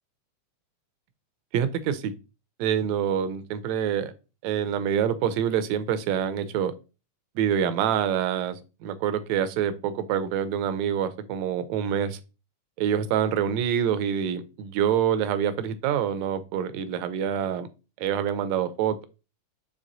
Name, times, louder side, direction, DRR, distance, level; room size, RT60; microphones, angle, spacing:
voice 1, 1.5-2.1 2.6-4.1 4.4-6.7 7.4-8.6 8.8-12.2 12.8-17.7 18.0-19.0, right 9 dB, 80° right, 12 dB, 1.7 m, -26 dB
7.7 x 3.4 x 3.9 m, 0.31 s
omnidirectional pair, 3.6 m